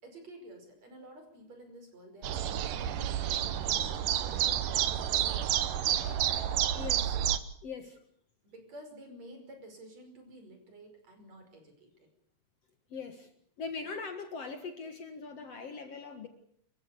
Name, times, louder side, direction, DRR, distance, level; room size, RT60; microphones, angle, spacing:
voice 1, 0.0-2.4 2.7-6.5 8.4-12.1, right 1 dB, 50° right, 5 dB, 6.5 m, -51 dB
sound 1, 2.2-7.4, right 10 dB, 75° right, 2.6 m, -30 dB
voice 2, 6.7-7.2 7.6-8.0 12.9-13.3 13.6-16.3, left 4 dB, 55° left, 7 dB, 2.4 m, -41 dB
26.5 x 15.5 x 8.5 m, 0.65 s
omnidirectional pair, 3.9 m